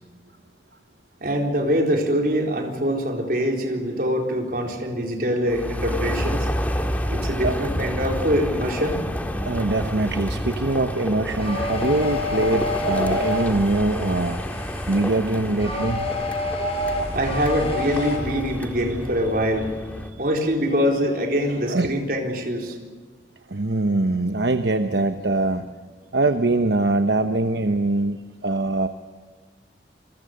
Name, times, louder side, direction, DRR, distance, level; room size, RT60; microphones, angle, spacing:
voice 1, 1.2-6.5 7.1-9.0 17.1-19.8 20.2-22.8, equal, 50° right, 2 dB, 4.0 m, -24 dB
sound 1, 5.5-20.1, equal, 10° left, 1.9 m, -29 dB
voice 2, 9.4-16.1 21.7-21.9 23.5-25.7 26.1-28.9, right 2 dB, 70° right, 8 dB, 1.0 m, -23 dB
sound 2, 11.4-18.2, left 2 dB, 35° left, 5.5 m, -29 dB
28.0 x 22.5 x 6.6 m, 1.5 s
head